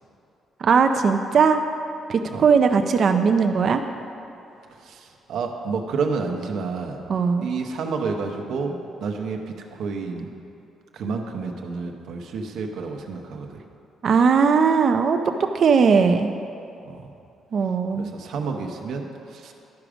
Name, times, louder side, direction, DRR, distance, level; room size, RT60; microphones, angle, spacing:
voice 1, 0.6-1.6 2.1-3.8 7.1-7.5 14.0-16.3 17.5-18.1, right 5 dB, 55° right, 6 dB, 0.4 m, -19 dB
voice 2, 4.7-7.1 7.4-10.3 10.9-13.6 16.9-17.1 17.9-19.5, right 4 dB, 75° right, 3 dB, 0.8 m, -30 dB
11.5 x 4.9 x 5.0 m, 2.6 s
cardioid pair, 90°, 0 cm